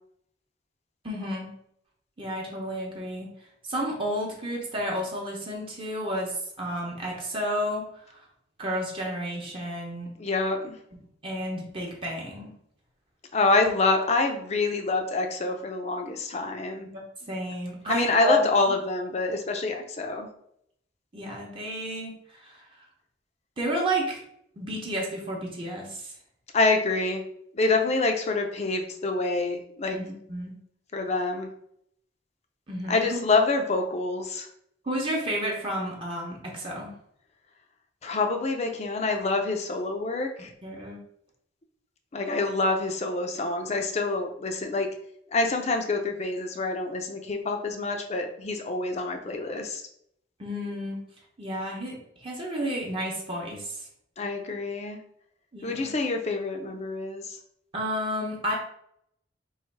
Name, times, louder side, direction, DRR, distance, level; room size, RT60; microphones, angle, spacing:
voice 1, 1.0-1.5 2.2-3.3 3.7-7.9 8.6-10.1 11.2-12.5 16.8-18.5 21.1-22.2 22.4-22.6 23.6-24.2 24.6-26.1 29.9-30.5 32.7-33.2 34.8-36.9 40.4-41.0 50.4-51.0 51.4-53.8 55.5-55.9 57.7-58.6, equal, 30° right, -2 dB, 0.9 m, -31 dB
voice 2, 10.2-10.8 13.3-16.9 17.9-20.3 26.5-27.2 27.5-30.0 30.9-31.5 32.9-34.5 38.0-40.5 42.1-44.9 45.3-49.8 54.2-55.0 55.6-57.4, left 3 dB, 35° left, 4 dB, 0.6 m, -26 dB
3.2 x 3.0 x 4.6 m, 0.71 s
head